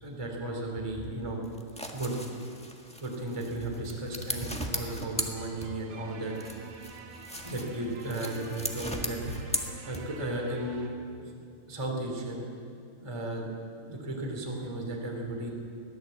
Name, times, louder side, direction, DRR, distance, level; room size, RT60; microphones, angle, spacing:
voice 1, 0.0-1.4 1.9-2.1 3.0-6.3 7.4-9.6 9.9-10.9 11.2-11.3 11.7-12.4 13.0-13.5 13.8-15.5, right 1 dB, 10° right, 0 dB, 2.6 m, -35 dB
sound 1, 1.4-6.0 6.3-10.3, equal, 10° left, 0.3 m, -38 dB
sound 2, 3.7-10.9, right 4 dB, 80° right, 3.3 m, -47 dB
21.5 x 16.0 x 7.9 m, 2.5 s
omnidirectional pair, 3.6 m